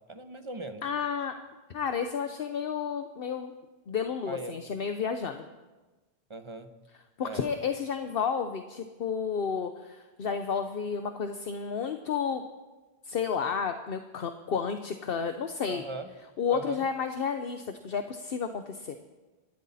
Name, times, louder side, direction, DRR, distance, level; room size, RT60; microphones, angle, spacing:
voice 1, 0.0-0.8 4.3-4.5 6.3-6.7 7.2-7.5 15.6-16.1 16.5-16.8, right 3 dB, 30° right, 7 dB, 1.1 m, -39 dB
voice 2, 0.8-1.3 1.7-3.5 3.9-5.4 7.2-12.4 13.1-15.8 16.4-19.0, left 6 dB, 60° left, 7 dB, 1.0 m, -31 dB
26.0 x 12.5 x 4.2 m, 1.2 s
omnidirectional pair, 1.1 m